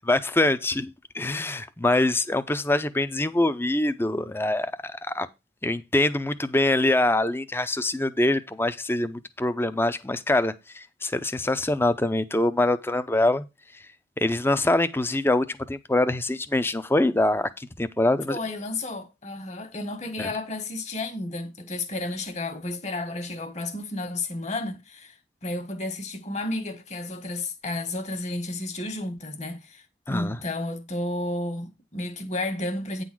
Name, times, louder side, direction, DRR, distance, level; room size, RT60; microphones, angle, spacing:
voice 1, 0.1-5.3 5.6-13.4 14.2-18.4 20.2-20.3 30.1-30.4, left 2 dB, 15° left, 0.6 m, -24 dB
voice 2, 18.3-25.1 25.4-33.0, left 2 dB, 40° left, 1.5 m, -32 dB
9.3 x 4.0 x 6.1 m
head